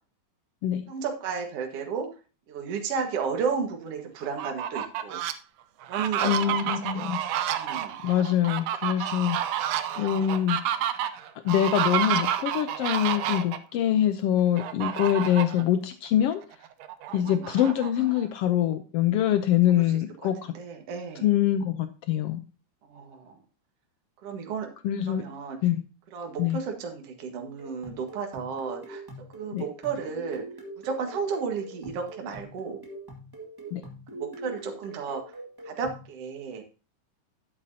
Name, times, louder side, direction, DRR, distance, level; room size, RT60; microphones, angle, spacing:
voice 1, 0.9-2.1 2.5-5.2 5.9-6.6 6.9-7.1 7.5-7.9 10.1-10.5 17.1-17.4 19.8-19.9 20.2-21.3 22.8-23.4 24.2-24.7 25.1-25.6 26.1-29.0 29.3-30.4 30.8-32.8 34.1-35.2 35.7-36.6, right 6 dB, 55° right, 3 dB, 2.4 m, -33 dB
Fowl, 4.2-5.3 5.8-13.6 14.6-15.6 16.1-16.2 16.5-18.3, right 10 dB, 75° right, 1.6 m, -30 dB
voice 2, 6.2-7.2 8.0-10.6 11.4-16.4 17.1-20.5 21.2-22.4 24.8-25.2 25.6-25.8 26.4-26.6 29.5-29.6 33.7-33.8, left 11 dB, 90° left, 9 dB, 1.3 m, -24 dB
sound 1, 27.6-36.1, right 1 dB, 10° right, 1.0 m, -43 dB
11.5 x 8.9 x 2.8 m, 0.34 s
omnidirectional pair, 3.6 m